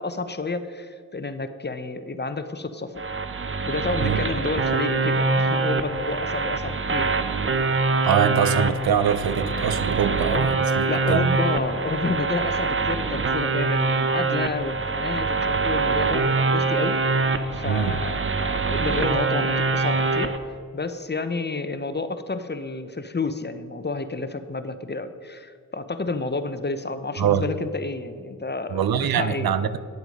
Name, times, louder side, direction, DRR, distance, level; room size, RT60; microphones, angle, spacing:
voice 1, 0.0-3.0 3.6-7.2 10.1-28.8 29.2-29.5, left 3 dB, 30° left, 0.8 m, -30 dB
sound 1, 3.0-20.4, right 3 dB, 35° right, 0.7 m, -24 dB
voice 2, 8.0-10.8 11.1-11.4 17.6-18.0 27.2-27.5 28.7-29.8, right 8 dB, 85° right, 0.5 m, -23 dB
9.4 x 7.8 x 5.2 m
cardioid pair, 45°, 35 cm